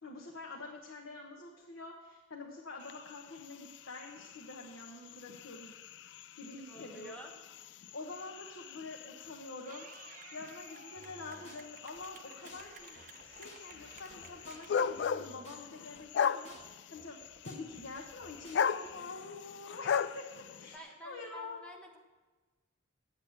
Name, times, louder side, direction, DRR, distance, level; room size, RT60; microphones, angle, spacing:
voice 1, 0.0-5.7 6.4-7.3 7.9-21.6, left 3 dB, 80° left, 0 dB, 1.2 m, -47 dB
sound 1, 2.8-20.8, left 7 dB, 60° left, 0.3 m, -39 dB
voice 2, 6.4-7.3 20.7-22.0, right 1 dB, 5° left, 0 dB, 1.2 m, -50 dB
Clapping / Cheering, 9.6-14.8, right 6 dB, 40° right, 0.5 m, -55 dB
sound 2, 11.0-12.0 12.4-12.6 12.9-16.0 16.4-16.6 16.9-18.9, left 2 dB, 35° left, 1.4 m, -56 dB
8.5 x 8.0 x 8.8 m, 1.3 s
head